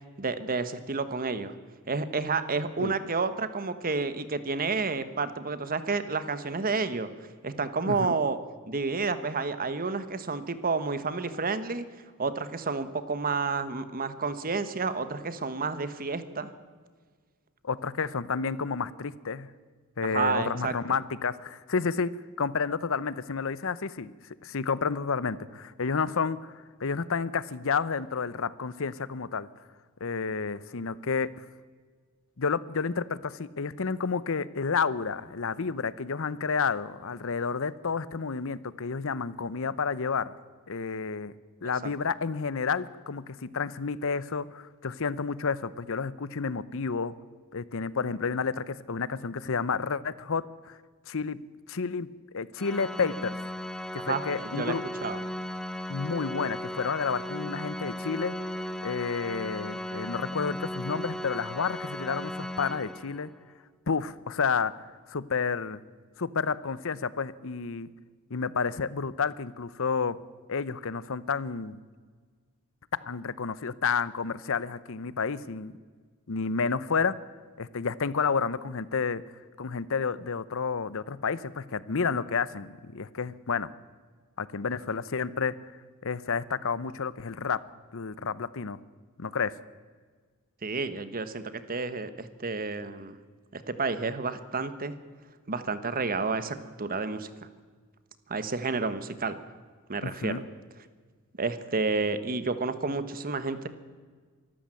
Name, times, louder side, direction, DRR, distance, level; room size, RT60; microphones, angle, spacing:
voice 1, 0.2-1.6 1.9-7.1 7.4-8.4 8.7-11.9 12.2-16.5 20.1-20.7 54.0-54.8 55.0-55.2 90.6-93.2 93.5-95.0 95.5-97.3 98.3-99.4 99.9-100.4 101.4-103.7, right 4 dB, 40° right, 12 dB, 1.3 m, -30 dB
voice 2, 17.6-19.5 20.0-22.1 22.4-24.1 24.4-29.5 30.0-31.3 32.4-40.3 40.7-41.3 41.6-47.1 47.5-50.8 51.1-51.4 51.7-52.1 52.3-53.4 53.9-54.8 55.9-58.4 58.8-63.3 63.9-65.8 66.2-67.9 68.3-70.2 70.5-71.8 73.0-75.7 76.3-77.2 77.6-79.2 79.6-83.7 84.4-85.7 86.0-87.6 87.9-88.8 89.2-89.5 100.0-100.4, left 5 dB, 65° left, 18 dB, 0.8 m, -30 dB
Organ, 52.6-63.4, equal, 5° left, 0.7 m, -36 dB
24.5 x 14.0 x 7.7 m, 1.5 s
head